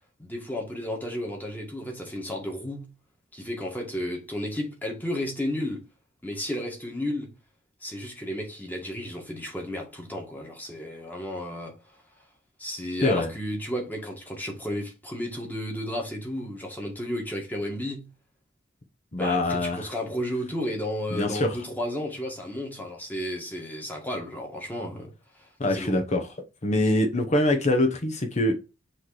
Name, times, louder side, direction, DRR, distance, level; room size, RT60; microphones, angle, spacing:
voice 1, 0.2-2.9 3.3-5.8 6.2-7.3 7.8-11.7 12.6-18.1 19.2-25.1 25.4-25.9, left 1 dB, 10° left, 1.6 m, -33 dB
voice 2, 13.0-13.3 19.1-19.9 21.1-21.6 25.6-26.3 26.6-28.6, left 1 dB, 35° left, 0.9 m, -24 dB
6.3 x 3.1 x 4.8 m
head